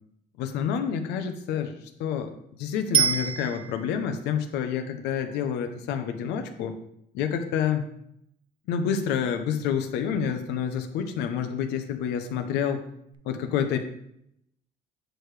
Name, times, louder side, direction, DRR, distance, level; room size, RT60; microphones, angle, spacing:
voice 1, 0.4-6.8 7.1-7.9 8.7-12.8 13.2-13.8, left 8 dB, 90° left, 7 dB, 0.8 m, -28 dB
Bicycle bell, 2.9-4.1 13.1-13.2, right 7 dB, 30° right, 0.5 m, -25 dB
7.6 x 4.7 x 3.3 m, 0.74 s
cardioid pair, 110°, 17 cm